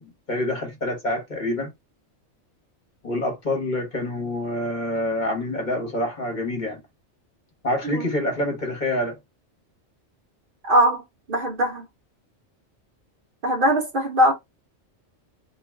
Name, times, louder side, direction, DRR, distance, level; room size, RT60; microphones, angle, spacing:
voice 1, 0.0-1.7 3.0-6.8 7.6-9.2, left 1 dB, 40° left, 1.0 m, -27 dB
voice 2, 10.6-11.9 13.4-14.3, equal, 50° right, 0.8 m, -21 dB
2.4 x 2.3 x 3.2 m
omnidirectional pair, 1.2 m